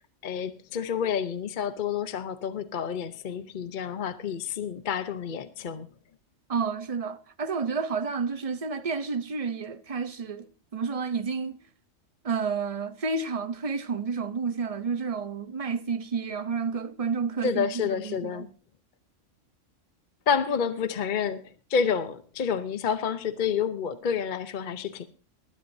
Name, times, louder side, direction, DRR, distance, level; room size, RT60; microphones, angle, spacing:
voice 1, 0.2-5.9 17.4-18.5 20.3-25.1, left 7 dB, 45° left, 0.8 m, -29 dB
voice 2, 6.5-11.6 12.2-18.5, right 5 dB, 35° right, 0.6 m, -30 dB
21.0 x 11.0 x 2.7 m
omnidirectional pair, 1.3 m